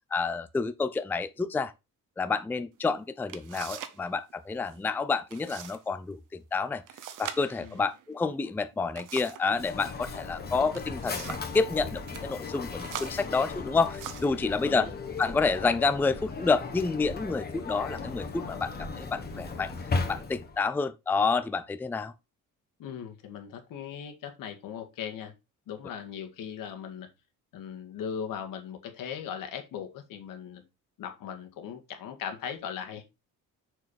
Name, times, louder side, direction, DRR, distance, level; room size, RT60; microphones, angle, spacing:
voice 1, 0.1-1.7 2.2-6.8 7.2-14.9 15.2-19.7 20.1-22.1, left 4 dB, 5° left, 0.4 m, -29 dB
sound 1, 2.8-2.9 3.3-4.0 4.3-4.8 5.3-5.8 6.1-6.2 6.9-9.5 10.5-11.6 12.0-12.3 12.8-14.4 15.2-15.4 15.9-16.4, right 10 dB, 70° right, 1.1 m, -42 dB
Mechanisms, 9.5-20.6, left 4 dB, 30° left, 1.5 m, -36 dB
voice 2, 22.8-25.3 25.7-27.1 27.5-30.6 31.0-33.0, left 8 dB, 85° left, 2.1 m, -38 dB
6.6 x 6.3 x 4.1 m
cardioid pair, 155°, 32 cm